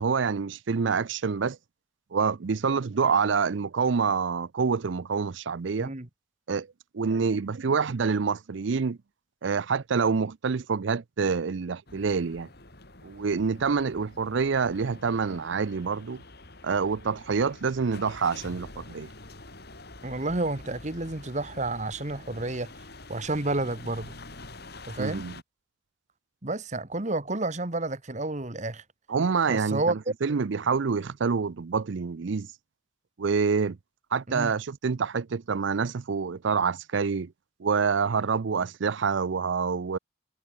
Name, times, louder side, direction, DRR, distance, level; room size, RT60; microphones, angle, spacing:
voice 1, 0.0-1.6 2.1-5.9 6.5-6.7 6.9-9.0 9.4-12.5 13.0-16.2 16.6-19.1 25.0-25.3 29.1-32.5 33.2-33.8 34.1-37.3 37.6-40.0, right 5 dB, 65° right, 0.5 m, -27 dB
sound 1, 11.9-25.4, left 2 dB, 50° left, 5.6 m, -47 dB
voice 2, 20.0-22.7 23.1-24.1 24.9-25.2 26.4-28.8 29.5-29.9 34.3-34.5, right 2 dB, 35° right, 1.5 m, -30 dB
head